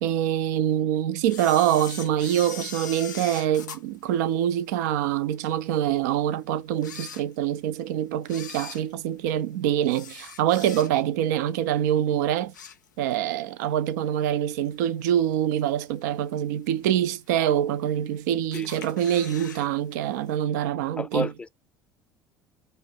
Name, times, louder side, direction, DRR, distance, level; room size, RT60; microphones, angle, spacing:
voice 1, 0.0-12.5 13.0-21.3, right 11 dB, 70° right, 0.4 m, -25 dB
Camera, 1.3-4.9 5.4-5.5 6.2-6.3 6.7-7.7 8.2-11.2 11.6-11.9 12.2-13.3 13.6-13.7 14.7-14.8 15.3-15.7 16.2-16.3 16.4-16.5 16.7-16.8 17.6-18.1 18.5-19.7 19.9-20.0 20.3-20.4, left 7 dB, 85° left, 0.4 m, -41 dB
voice 2, 21.0-21.5, left 2 dB, 10° left, 0.3 m, -31 dB
2.6 x 2.0 x 3.8 m
figure-of-eight pair, 60°, 10 cm